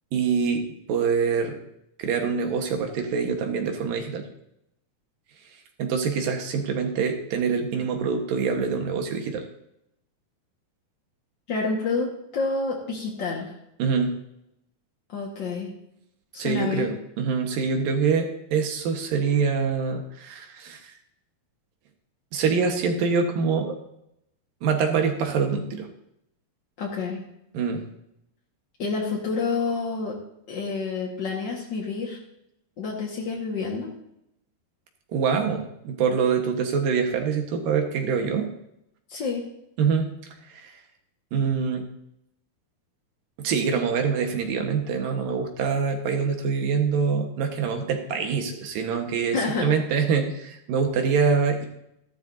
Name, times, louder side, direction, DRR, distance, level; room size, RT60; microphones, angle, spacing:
voice 1, 0.1-1.6 2.0-4.3 5.8-9.4 13.8-14.1 16.4-20.9 22.3-23.7 24.6-25.9 27.5-27.8 35.1-38.5 39.8-40.1 40.5-40.7 41.3-41.8 43.4-51.7, right 5 dB, 70° right, 4 dB, 2.8 m, -25 dB
voice 2, 11.5-13.5 15.1-15.7 16.3-16.9 26.8-27.2 28.8-30.2 30.5-32.2 32.8-33.9 39.1-39.5 49.3-49.7, left 4 dB, 55° left, -2 dB, 1.2 m, -28 dB
14.5 x 12.5 x 2.7 m, 0.80 s
omnidirectional pair, 4.4 m